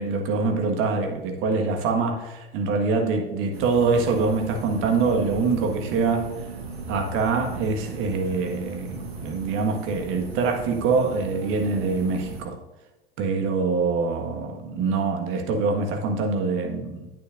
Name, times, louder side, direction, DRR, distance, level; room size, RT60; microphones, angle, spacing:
voice 1, 0.0-6.3 6.9-12.6 13.2-17.1, right 4 dB, 45° right, 3 dB, 1.6 m, -24 dB
sound 1, 3.5-12.4, right 3 dB, 85° right, 1.6 m, -36 dB
10.0 x 8.8 x 2.5 m, 1.0 s
figure-of-eight pair, 90°, 30 cm